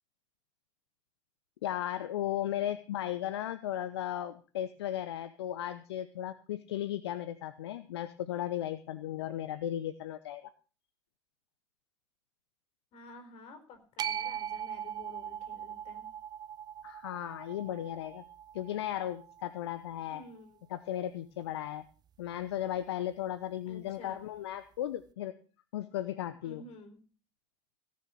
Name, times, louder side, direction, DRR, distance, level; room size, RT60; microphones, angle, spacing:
voice 1, 1.6-10.5 16.8-18.2 18.5-20.2 20.7-21.8 22.2-25.3 25.7-26.6, left 12 dB, 65° left, 12 dB, 0.9 m, -36 dB
voice 2, 12.9-16.1 20.1-20.6 23.6-24.2 26.4-27.0, left 2 dB, 45° left, 7 dB, 4.5 m, -51 dB
sound 1, 14.0-20.2, right 9 dB, 30° right, 0.6 m, -41 dB
17.5 x 6.7 x 7.1 m, 0.36 s
figure-of-eight pair, 80°, 14 cm